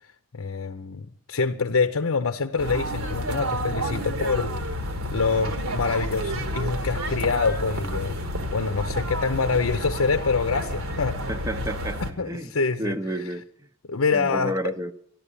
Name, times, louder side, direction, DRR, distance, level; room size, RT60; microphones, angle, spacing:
voice 1, 0.3-4.5 5.1-8.2 8.5-11.2 12.2-13.0 13.9-14.7, left 4 dB, 65° left, 0.7 m, -25 dB
sound 1, 2.6-12.1, equal, 70° right, 1.6 m, -30 dB
voice 2, 11.3-12.5 12.8-13.4 14.1-14.9, right 1 dB, 15° right, 0.7 m, -30 dB
12.5 x 12.0 x 8.5 m
head